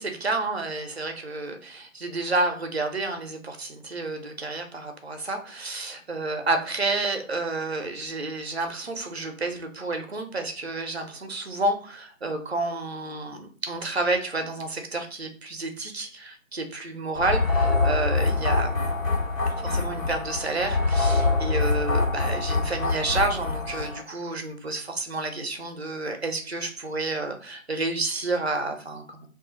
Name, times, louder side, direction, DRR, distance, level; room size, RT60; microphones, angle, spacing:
voice 1, 0.0-18.9 19.6-29.3, right 2 dB, 50° right, 6 dB, 0.5 m, -30 dB
sound 1, 17.1-24.0, left 3 dB, 75° left, 1.2 m, -25 dB
2.4 x 2.0 x 3.7 m, 0.43 s
figure-of-eight pair, 155°, 41 cm